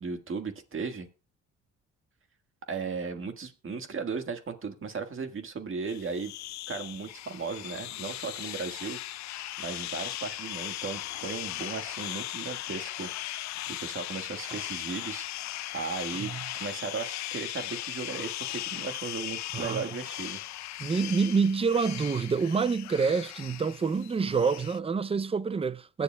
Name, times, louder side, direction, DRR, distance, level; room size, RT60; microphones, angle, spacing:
voice 1, 0.0-1.1 2.7-6.3 6.7-9.0 9.6-13.1 13.4-15.3 15.7-16.3 16.6-20.4, right 5 dB, 45° right, 1.7 m, -36 dB
sound 1, 5.9-24.8, left 15 dB, 65° left, 0.5 m, -38 dB
voice 2, 19.5-20.0 20.8-26.0, right 5 dB, 20° right, 0.5 m, -27 dB
21.5 x 7.6 x 2.3 m
cardioid pair, 90°, 30 cm